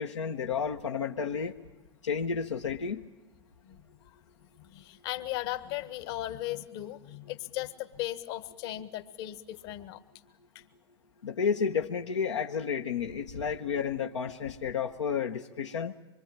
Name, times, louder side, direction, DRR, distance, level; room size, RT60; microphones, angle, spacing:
voice 1, 0.0-1.5 2.0-3.0 11.2-15.9, left 6 dB, 85° left, 3 dB, 1.1 m, -31 dB
voice 2, 4.6-10.0 10.5-10.6, left 14 dB, 60° left, 12 dB, 1.6 m, -37 dB
25.0 x 24.0 x 9.0 m, 1.1 s
hypercardioid pair, 95°, 15 cm